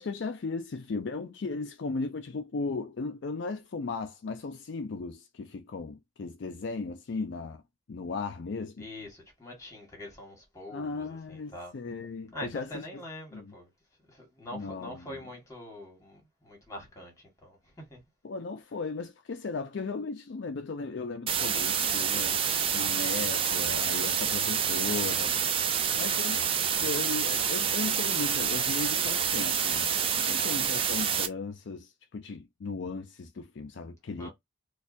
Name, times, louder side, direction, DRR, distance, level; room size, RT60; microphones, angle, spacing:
voice 1, 0.0-7.6 7.9-8.9 10.7-13.0 13.3-13.5 14.5-15.3 18.2-25.4 26.0-26.5 26.8-29.9 30.2-34.3, left 4 dB, 65° left, 0.4 m, -36 dB
voice 2, 8.8-11.7 12.3-13.7 14.1-18.0 25.7-26.1 30.2-30.6 34.2-34.3, left 1 dB, 15° left, 1.5 m, -44 dB
sound 1, 21.3-31.3, right 7 dB, 25° right, 0.4 m, -28 dB
4.2 x 2.3 x 2.6 m
head